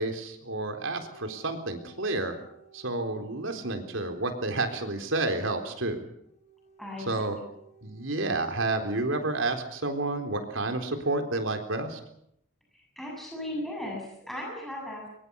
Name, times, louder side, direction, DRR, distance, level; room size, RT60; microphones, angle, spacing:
voice 1, 0.0-2.4 2.7-6.0 7.1-7.4 7.8-12.0, right 2 dB, 75° right, 5 dB, 3.9 m, -30 dB
sound 1, 0.9-4.9 6.2-8.4, right 2 dB, 30° left, 3.8 m, -57 dB
voice 2, 6.8-7.1 12.7-15.1, left 1 dB, ahead, -2 dB, 7.7 m, -37 dB
23.5 x 23.0 x 7.0 m, 0.74 s
head